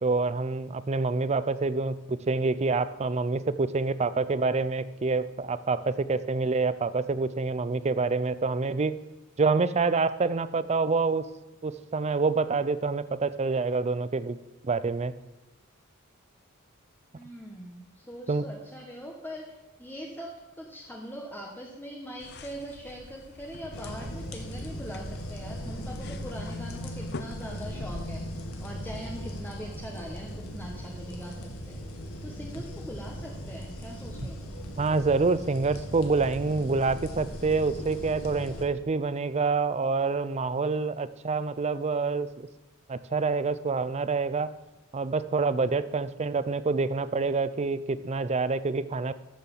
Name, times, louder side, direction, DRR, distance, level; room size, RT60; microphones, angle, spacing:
voice 1, 0.0-9.0 9.4-11.3 11.6-14.4 14.6-15.1 18.3-18.5 34.8-42.5 42.9-44.5 44.9-49.1, right 4 dB, 30° right, 15 dB, 0.5 m, -27 dB
voice 2, 17.1-31.8 32.2-34.6, equal, 10° left, -1 dB, 1.2 m, -42 dB
sound 1, 22.2-27.7, left 3 dB, 50° left, 0.6 m, -46 dB
sound 2, 23.7-38.6, equal, 80° left, 1.8 m, -38 dB
12.5 x 6.7 x 7.2 m, 1.0 s
head